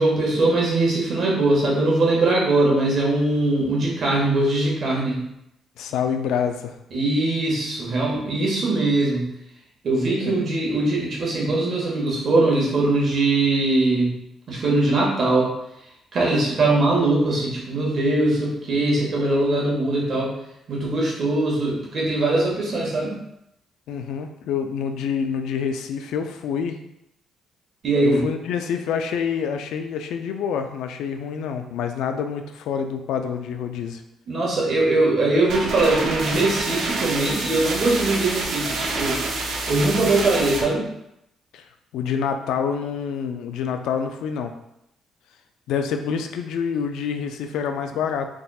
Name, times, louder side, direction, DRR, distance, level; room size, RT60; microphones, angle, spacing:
voice 1, 0.0-5.3 6.9-9.3 9.8-14.2 14.5-15.5 16.1-20.3 20.7-23.2 27.8-28.3 34.3-39.2 39.7-40.9, right 2 dB, 50° right, -3 dB, 1.4 m, -21 dB
voice 2, 5.8-6.8 10.2-10.3 23.9-26.8 28.0-34.0 41.5-41.7 41.9-44.5 45.7-48.3, left 7 dB, 85° left, 6 dB, 0.3 m, -27 dB
sound 1, 35.5-40.6, right 2 dB, 75° right, 0.7 m, -27 dB
4.0 x 3.5 x 2.3 m, 0.82 s
cardioid pair, 90°, 0 cm